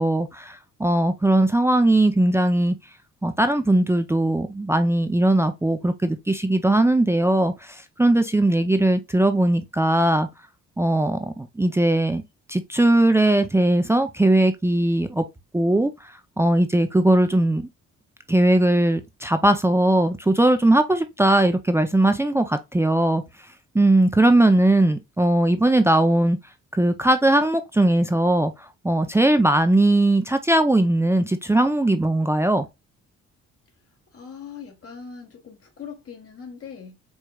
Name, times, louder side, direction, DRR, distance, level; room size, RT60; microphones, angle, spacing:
voice 1, 0.0-2.8 3.2-10.3 10.8-12.2 12.5-15.2 15.5-15.9 16.4-17.7 18.3-23.2 23.7-26.4 26.7-28.5 28.8-32.7, right 1 dB, 10° right, 0.5 m, -19 dB
voice 2, 34.1-37.0, left 6 dB, 50° left, 1.5 m, -40 dB
4.7 x 3.1 x 2.2 m
cardioid pair, 90°, 30 cm